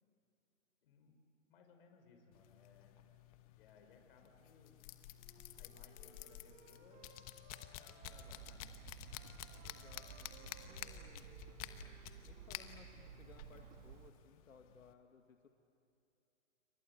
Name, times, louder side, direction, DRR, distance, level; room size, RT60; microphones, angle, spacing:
voice 1, 0.8-1.2 1.5-3.0 3.5-4.7 5.6-7.1 7.8-8.8, left 5 dB, 45° left, 4 dB, 5.4 m, -65 dB
sound 1, 2.3-14.9, left 13 dB, 25° left, 1.2 m, -52 dB
Wind instrument woodwind instrument, 5.1-8.4 8.9-12.5, right 2 dB, 20° right, 5.6 m, -64 dB
Hammer, 8.0-14.1, right 11 dB, 35° right, 1.6 m, -55 dB
voice 2, 9.6-11.5 12.2-15.5, left 5 dB, 85° left, 4 dB, 2.1 m, -62 dB
29.5 x 24.5 x 8.2 m, 2.7 s
hypercardioid pair, 145°, 39 cm